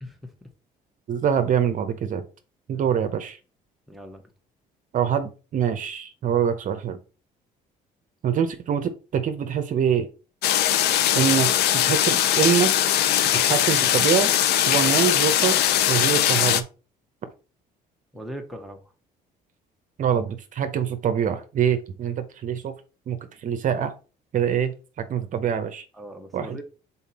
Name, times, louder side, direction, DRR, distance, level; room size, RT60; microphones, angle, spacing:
voice 1, 0.0-0.3 2.7-2.8 3.9-4.2 8.3-8.4 18.1-18.8 25.9-26.6, equal, ahead, 2 dB, 1.2 m, -39 dB
voice 2, 1.1-2.2 2.7-3.4 4.9-7.0 8.2-10.1 11.1-12.7 13.3-14.3 14.7-15.6 15.9-16.6 20.0-22.7 23.1-23.9 24.3-25.8 26.3-26.6, right 8 dB, 50° right, 8 dB, 0.8 m, -24 dB
sound 1, 10.4-16.6, left 11 dB, 75° left, 0.6 m, -20 dB
5.7 x 4.1 x 4.2 m, 0.34 s
cardioid pair, 110°, 17 cm